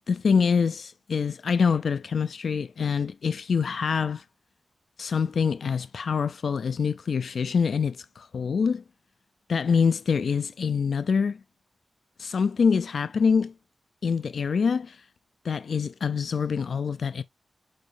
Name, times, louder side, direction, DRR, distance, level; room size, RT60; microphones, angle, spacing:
voice 1, 0.1-4.2 5.0-8.8 9.5-11.4 12.2-13.5 14.0-15.0 15.4-17.2, left 6 dB, 90° left, 0.3 m, -25 dB
6.3 x 4.9 x 3.3 m
wide cardioid pair, 105°, 0 cm